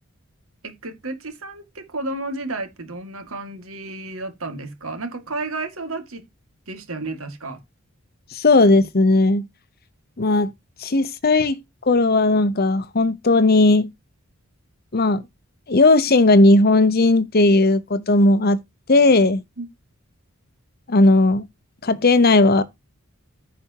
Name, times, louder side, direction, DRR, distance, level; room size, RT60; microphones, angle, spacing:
voice 1, 0.6-6.2 6.7-7.6 19.6-19.7, right 2 dB, 70° right, 2.1 m, -32 dB
voice 2, 8.3-9.5 10.2-10.5 10.8-11.6 11.9-13.9 14.9-15.2 15.7-18.6 18.9-19.4 20.9-21.5 21.8-22.6, left 2 dB, 45° left, 0.8 m, -16 dB
15.0 x 5.0 x 2.9 m
head